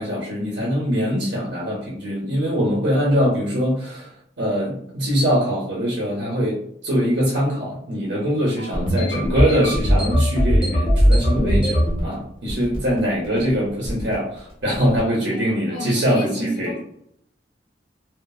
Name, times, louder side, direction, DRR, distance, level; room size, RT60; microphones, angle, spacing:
voice 1, 0.0-4.1 4.4-16.7, equal, 90° right, -5 dB, 0.7 m, -22 dB
voice 2, 8.6-9.6 15.3-16.8, left 2 dB, 85° left, -2 dB, 0.6 m, -37 dB
sound 1, 8.7-12.0 12.5-13.0 13.2-13.5 13.9-14.1 14.7-15.0, equal, 30° left, 0.7 m, -19 dB
3.1 x 2.1 x 2.3 m, 0.70 s
head